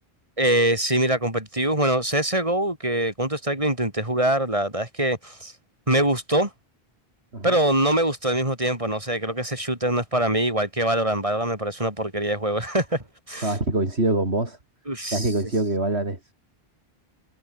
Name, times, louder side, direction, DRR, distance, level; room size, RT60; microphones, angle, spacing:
voice 1, 0.4-5.5 5.9-6.5 7.4-13.5 14.9-15.3, right 1 dB, 30° right, 4.4 m, -24 dB
voice 2, 13.4-14.6 15.1-16.3, right 2 dB, 85° right, 4.8 m, -24 dB
omnidirectional pair, 1.1 m